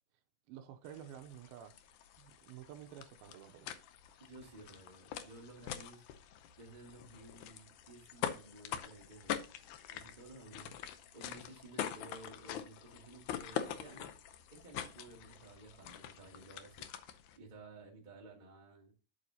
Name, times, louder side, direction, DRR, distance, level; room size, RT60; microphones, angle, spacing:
voice 1, 0.5-1.8 2.2-3.7, right 10 dB, 80° right, 2.5 m, -51 dB
sound 1, 0.8-17.4, left 10 dB, 85° left, 1.7 m, -45 dB
voice 2, 4.2-6.0 6.6-9.4 9.9-10.8 11.1-14.1 14.5-16.9 17.4-18.9, right 2 dB, 20° right, 1.2 m, -54 dB
8.7 x 7.9 x 2.8 m
omnidirectional pair, 4.5 m